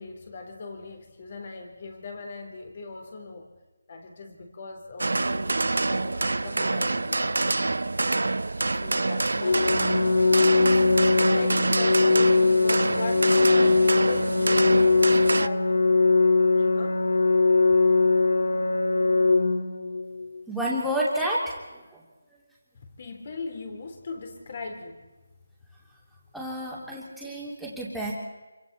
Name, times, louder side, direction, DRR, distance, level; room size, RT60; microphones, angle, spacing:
voice 1, 0.0-3.5 3.9-7.7 8.8-10.9 11.3-15.8 16.6-17.0 22.7-25.0 26.6-27.0, left 3 dB, 35° left, 4 dB, 3.6 m, -39 dB
sound 1, 5.0-15.5, right 2 dB, 80° right, 0.7 m, -26 dB
Organ, 9.4-20.4, left 3 dB, 70° left, 2.3 m, -21 dB
voice 2, 20.5-22.0 26.3-28.1, right 1 dB, ahead, -7 dB, 3.0 m, -30 dB
26.5 x 25.0 x 4.3 m, 1.1 s
figure-of-eight pair, 175°, 0 cm